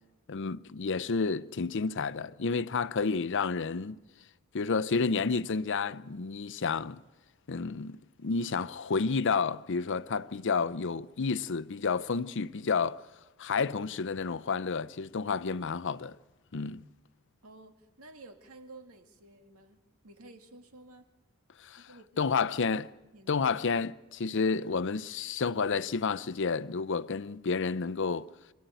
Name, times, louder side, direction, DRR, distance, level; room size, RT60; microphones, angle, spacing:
voice 1, 0.3-4.0 4.5-7.0 7.5-13.0 13.4-16.2 16.5-16.8 21.6-21.8 22.2-22.9 23.3-28.3, left 5 dB, 55° left, 0.6 m, -30 dB
voice 2, 17.4-21.1 21.8-22.3 23.1-23.5, right 2 dB, 80° right, 2.1 m, -52 dB
26.0 x 12.5 x 9.2 m
head